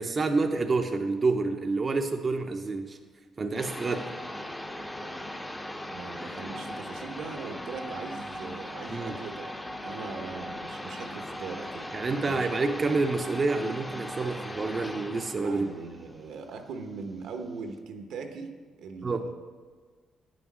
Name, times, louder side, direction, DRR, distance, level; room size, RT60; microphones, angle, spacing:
voice 1, 0.0-3.0 3.4-4.1 8.9-9.2 11.9-15.7 19.0-19.3, right 3 dB, 35° right, 5 dB, 0.6 m, -28 dB
sound 1, 3.6-17.0, left 1 dB, 10° left, 0.7 m, -39 dB
voice 2, 5.9-9.5 9.8-11.9 12.2-12.5 15.4-18.5 18.8-19.3, right 4 dB, 80° right, 6 dB, 1.0 m, -40 dB
8.7 x 6.2 x 6.1 m, 1.4 s
cardioid pair, 90°, 0 cm